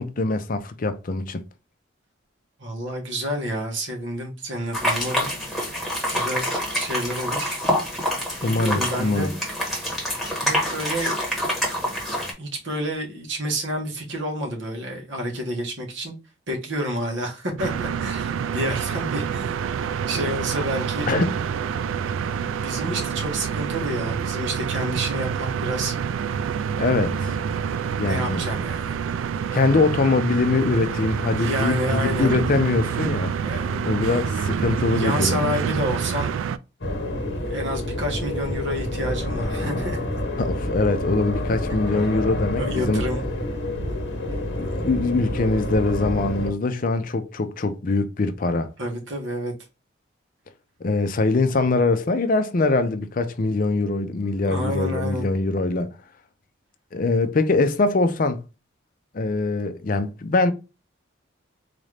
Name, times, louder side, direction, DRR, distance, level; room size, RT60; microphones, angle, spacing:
voice 1, 0.0-1.4 8.4-9.3 21.1-21.3 26.8-27.3 28.0-28.4 29.5-35.4 40.4-43.0 44.6-48.7 50.8-55.9 56.9-58.4 59.1-60.5, left 3 dB, 45° left, 0.5 m, -23 dB
voice 2, 2.6-5.8 6.1-6.5 6.8-7.6 8.4-9.4 10.4-11.2 12.4-16.1 16.5-19.7 20.1-21.1 22.4-25.9 27.5-29.0 31.3-32.4 33.3-34.0 34.9-36.3 37.4-40.0 42.6-43.3 48.8-49.5 54.2-55.3, equal, 70° right, 1.3 m, -29 dB
Boris and Ivo two Cats are eating, 4.7-12.3, equal, ahead, 1.2 m, -26 dB
sound 1, 17.6-36.6, right 7 dB, 90° right, 0.3 m, -27 dB
sound 2, 36.8-46.5, left 1 dB, 60° left, 1.0 m, -28 dB
4.1 x 2.5 x 3.2 m
head